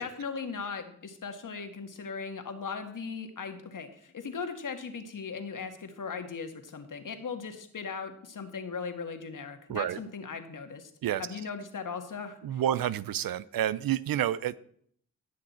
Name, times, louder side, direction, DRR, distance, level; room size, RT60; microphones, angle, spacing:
voice 1, 0.0-10.9 11.2-12.6, left 5 dB, 60° left, 1.7 m, -38 dB
voice 2, 12.4-14.6, right 11 dB, 75° right, 0.6 m, -29 dB
16.5 x 6.6 x 4.3 m
supercardioid pair, 40°, 36 cm